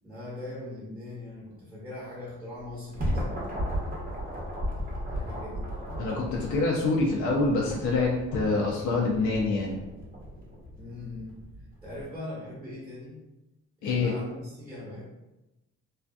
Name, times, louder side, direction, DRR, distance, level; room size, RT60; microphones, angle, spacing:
voice 1, 0.0-3.9 4.9-5.7 10.8-11.4 11.8-13.2 13.8-15.0, left 1 dB, 5° right, -7 dB, 1.0 m, -41 dB
sound 1, 2.6-12.0, equal, 30° right, 0.8 m, -35 dB
voice 2, 6.0-9.7 13.8-14.1, left 3 dB, 75° left, -2 dB, 0.6 m, -26 dB
2.7 x 2.3 x 2.3 m, 0.98 s
cardioid pair, 90°, 30 cm